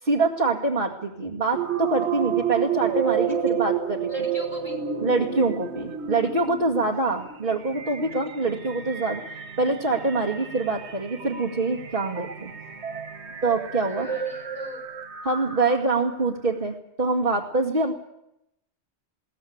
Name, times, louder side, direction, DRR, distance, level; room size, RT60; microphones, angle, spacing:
voice 1, 0.0-4.1 5.0-9.2 9.6-12.5 13.4-14.1 15.2-17.9, right 3 dB, 50° right, -2 dB, 2.3 m, -25 dB
sound 1, 1.5-16.1, right 8 dB, 80° right, 1.8 m, -31 dB
voice 2, 4.1-4.8 13.7-14.9 17.7-17.8, left 1 dB, 45° left, 2 dB, 5.6 m, -42 dB
21.5 x 18.0 x 8.7 m, 0.84 s
omnidirectional pair, 1.1 m